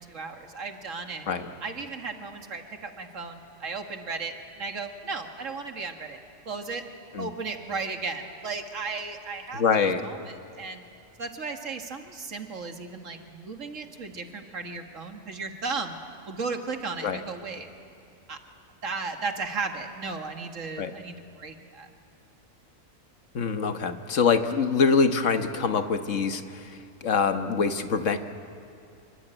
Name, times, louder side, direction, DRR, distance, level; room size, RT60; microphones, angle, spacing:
voice 1, 0.0-1.3 1.6-4.3 4.6-6.2 6.5-6.8 7.2-10.8 11.2-16.0 16.3-17.7 18.3-18.4 18.8-21.9, right 4 dB, 70° right, 5 dB, 2.2 m, -35 dB
voice 2, 9.5-10.3 17.0-17.2 20.8-20.9 23.3-28.2, left 5 dB, 70° left, 8 dB, 1.6 m, -25 dB
26.5 x 24.5 x 9.0 m, 2.6 s
omnidirectional pair, 1.4 m